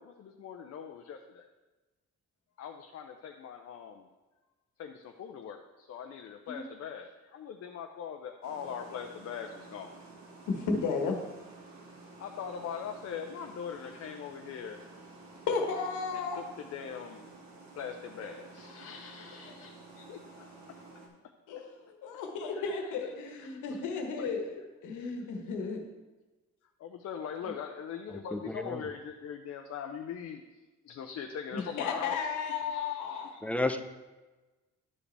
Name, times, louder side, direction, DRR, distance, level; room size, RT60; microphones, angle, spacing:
voice 1, 0.0-1.5 2.6-4.1 4.8-10.0 12.2-14.8 16.1-17.2 17.8-20.5 22.5-23.8 24.2-24.3 24.9-25.1 26.8-30.4 30.8-33.4, left 7 dB, 55° left, 4 dB, 0.6 m, -42 dB
sound 1, 8.4-21.1, right 3 dB, 65° right, 1.8 m, -52 dB
voice 2, 10.5-11.2 15.5-16.4 21.5-21.8 22.0-24.6 24.8-25.8 31.5-33.4, left 5 dB, 85° left, 3 dB, 1.3 m, -33 dB
voice 3, 28.3-28.8 33.4-33.8, left 2 dB, 5° left, 8 dB, 0.5 m, -31 dB
11.0 x 5.0 x 3.4 m, 1.2 s
cardioid pair, 90°, 30 cm